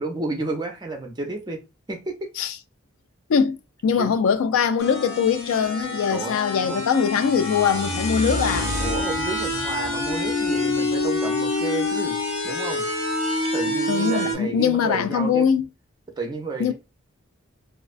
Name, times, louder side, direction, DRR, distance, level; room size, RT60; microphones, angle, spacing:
voice 1, 0.0-1.6 1.9-2.3 4.0-4.1 6.1-6.8 8.3-8.5 8.8-12.2 12.4-12.9 13.5-15.5 16.2-16.7, right 2 dB, 20° right, 0.4 m, -31 dB
voice 2, 3.3-8.7 13.9-15.7 16.6-16.7, left 7 dB, 75° left, 0.3 m, -22 dB
sound 1, 4.8-14.4, left 2 dB, 60° left, 1.0 m, -27 dB
sound 2, 7.0-11.2, equal, 35° left, 0.6 m, -32 dB
2.4 x 2.1 x 2.4 m
head